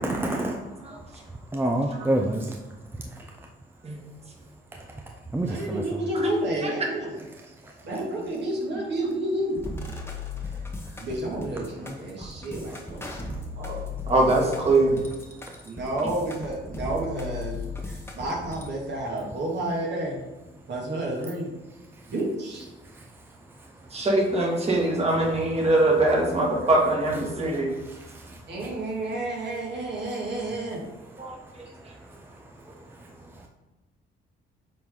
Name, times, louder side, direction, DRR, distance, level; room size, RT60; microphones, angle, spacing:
voice 1, 0.0-0.6 1.5-2.5 5.3-5.8, right 1 dB, 10° right, 2 dB, 0.6 m, -26 dB
voice 2, 5.4-7.2 7.8-9.6 11.0-13.0 13.6-13.8 15.6-20.2 20.7-21.5 22.1-22.7 28.5-30.8, right 1 dB, 60° right, -3 dB, 2.3 m, -30 dB
sound 1, 9.6-18.7, left 3 dB, 10° left, 1.1 m, -36 dB
voice 3, 14.1-15.0 23.9-27.7 31.2-31.6, right 2 dB, 30° right, -1 dB, 1.8 m, -22 dB
7.5 x 4.0 x 3.8 m, 1.1 s
cardioid pair, 90°, 20 cm